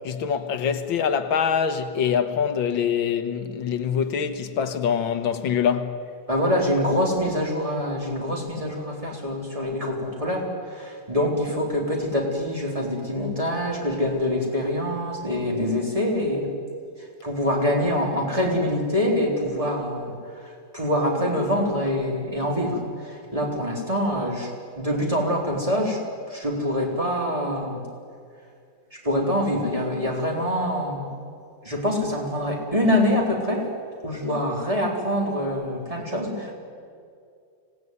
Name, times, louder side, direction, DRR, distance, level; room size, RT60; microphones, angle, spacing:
voice 1, 0.0-6.0, left 7 dB, 90° left, 2.0 m, -24 dB
voice 2, 6.3-16.5 17.2-20.1 20.4-26.0 26.3-27.8 29.0-31.1 31.6-33.7 34.0-36.5, left 1 dB, 15° right, 3.9 m, -25 dB
25.0 x 17.5 x 9.5 m
omnidirectional pair, 2.1 m